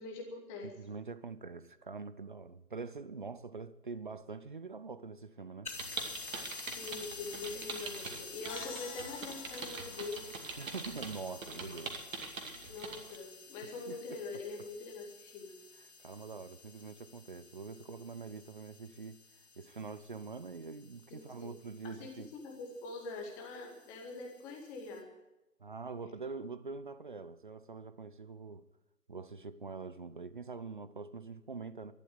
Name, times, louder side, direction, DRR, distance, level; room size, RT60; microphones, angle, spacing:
voice 1, 0.0-0.7 6.6-10.3 11.5-11.7 12.7-15.5 21.1-21.5 21.8-25.0, left 3 dB, 5° left, 0.7 m, -44 dB
voice 2, 0.6-5.7 10.6-12.0 13.6-14.2 14.6-14.7 16.0-19.2 19.6-22.3 25.6-28.6 29.1-31.9, right 4 dB, 35° right, 0.5 m, -44 dB
sound 1, 5.6-25.0, left 4 dB, 70° left, 2.9 m, -51 dB
sound 2, 5.7-13.2, right 4 dB, 55° right, 2.4 m, -43 dB
sound 3, 8.5-12.0, left 7 dB, 30° left, 1.5 m, -51 dB
12.0 x 11.5 x 8.0 m
figure-of-eight pair, 140°, 47 cm